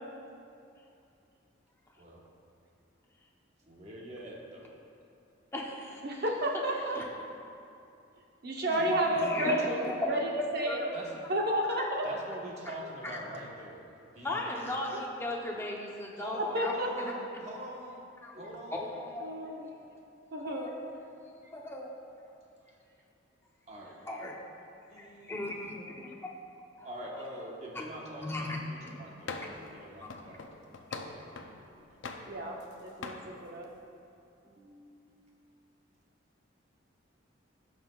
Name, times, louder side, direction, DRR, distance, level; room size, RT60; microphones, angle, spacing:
voice 1, 3.6-4.8 8.7-10.2 10.9-11.3 12.0-13.8 14.1-14.8 16.1-19.0 22.7-22.8 23.7-24.0 24.9-26.0 26.8-30.4 31.1-32.0 34.4-35.5, equal, 35° right, -3 dB, 1.2 m, -45 dB
voice 2, 5.5-6.2 6.9-7.1 8.7-8.8 9.2-10.1 10.7-10.8 11.8-11.9 14.2-17.1 18.2-18.3 18.7-19.6 20.4-20.8 21.5-21.9 24.1-24.3 25.0-25.9 26.8-26.9 28.2-28.6 30.0-30.1, left 1 dB, 10° left, -2 dB, 0.8 m, -37 dB
voice 3, 6.0-7.0 8.4-10.9 11.3-12.1 14.9-15.0 16.5-16.9 18.3-18.4 19.2-19.7 20.3-20.7 32.3-33.7, right 1 dB, 50° right, 0 dB, 0.9 m, -31 dB
sound 1, 29.3-29.7 30.1-31.6 32.0-32.7 33.0-33.3, left 4 dB, 70° left, 0.6 m, -42 dB
15.0 x 5.9 x 2.4 m, 2.6 s
head